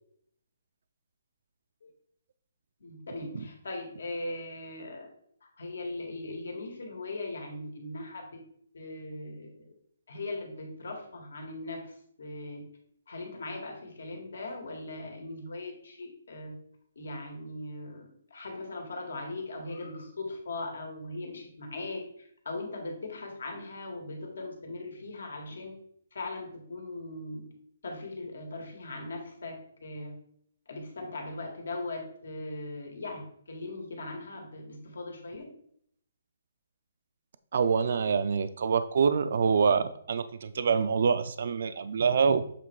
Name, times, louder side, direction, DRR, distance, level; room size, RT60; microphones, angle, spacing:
voice 1, 2.8-5.1 5.4-8.4 8.7-9.7 10.1-12.7 13.1-16.5 17.0-25.8 26.1-27.5 27.8-30.2 30.7-35.6, left 2 dB, 75° left, 2 dB, 2.0 m, -39 dB
voice 2, 37.5-42.4, right 6 dB, 50° right, 11 dB, 0.4 m, -25 dB
7.5 x 3.3 x 4.6 m, 0.66 s
hypercardioid pair, 175°, 0 cm